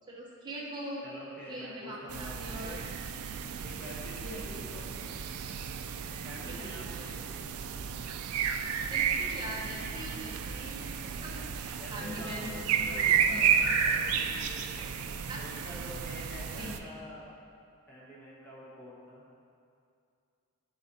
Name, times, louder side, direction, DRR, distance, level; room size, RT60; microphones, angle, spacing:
voice 1, 0.1-1.0 1.5-2.8 4.2-4.7 6.5-7.0 8.9-12.6 13.1-13.4 15.3-15.4 16.6-16.9, right 1 dB, 20° right, -4 dB, 0.9 m, -42 dB
voice 2, 1.0-2.8 3.6-4.9 6.2-7.5 11.7-15.0 15.4-17.3 17.9-19.2, equal, 10° left, -8 dB, 1.3 m, -46 dB
sound 1, 2.1-16.8, right 7 dB, 80° right, 0.4 m, -32 dB
10.5 x 4.5 x 2.8 m, 2.4 s
head